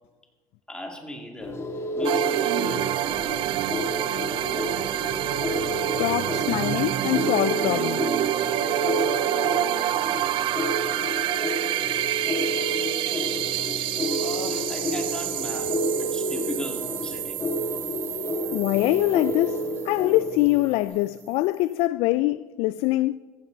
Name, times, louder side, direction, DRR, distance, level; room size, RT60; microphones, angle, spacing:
voice 1, 0.7-1.6 1.9-3.1 14.2-17.4, left 1 dB, 10° left, 2.4 m, -38 dB
sound 1, 1.4-20.8, equal, 25° left, 1.6 m, -30 dB
sound 2, 2.0-20.5, right 14 dB, 50° right, 0.4 m, -28 dB
voice 2, 5.6-8.1 18.5-23.2, left 17 dB, 70° left, 0.4 m, -24 dB
15.0 x 15.0 x 4.0 m
cardioid pair, 130°, 11 cm